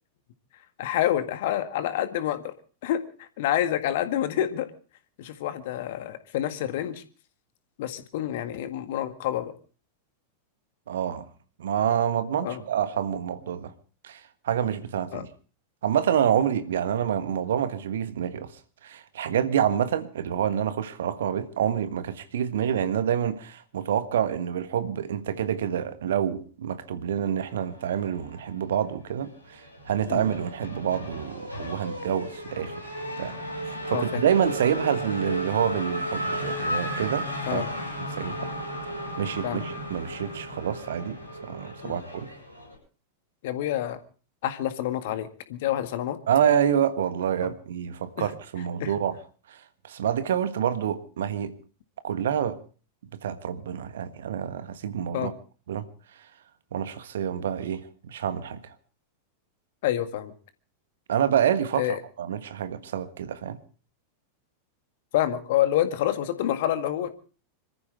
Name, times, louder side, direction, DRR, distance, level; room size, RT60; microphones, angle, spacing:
voice 1, 0.8-2.5 2.8-4.7 5.2-7.0 7.8-9.5 12.4-12.6 15.1-15.3 30.1-30.2 33.9-34.2 37.5-37.7 39.4-39.7 41.8-42.0 43.4-44.0 44.4-46.2 47.4-47.5 48.2-48.3 48.8-48.9 55.1-55.3 59.8-60.3 61.8-62.0 65.1-67.1, left 12 dB, 55° left, 1.8 m, -28 dB
voice 2, 10.9-11.3 11.6-13.7 14.0-15.3 15.8-18.5 18.8-32.7 33.2-33.3 33.6-37.6 38.2-38.5 39.2-42.3 46.3-49.2 49.5-51.5 52.0-52.6 53.2-55.3 55.7-55.8 56.7-58.7 61.1-61.9 62.2-63.6, right 9 dB, 60° right, 1.5 m, -27 dB
Race car auto racing / Accelerating revving vroom, 27.7-28.8 29.1-42.8, equal, 85° right, 6.1 m, -34 dB
26.5 x 14.0 x 3.5 m
figure-of-eight pair, 90°, 0 cm